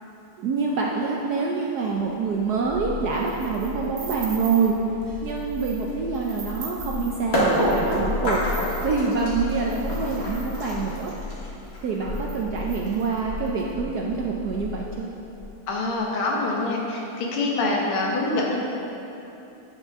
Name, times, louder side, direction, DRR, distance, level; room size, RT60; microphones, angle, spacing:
voice 1, 0.4-4.8 5.2-8.4 8.8-11.1 11.8-15.1, right 4 dB, 75° right, -1 dB, 0.9 m, -26 dB
sound 1, 2.0-15.4, left 4 dB, 10° left, 1.1 m, -36 dB
sound 2, 3.1-4.8 5.3-5.9 6.1-11.2 11.8-11.9 12.1-13.6, right 5 dB, 55° right, 1.2 m, -43 dB
sound 3, 7.3-13.2, equal, 45° left, 2.2 m, -27 dB
voice 2, 15.7-18.6, left 2 dB, 85° left, -2 dB, 2.1 m, -25 dB
9.1 x 7.9 x 3.5 m, 2.9 s
omnidirectional pair, 2.3 m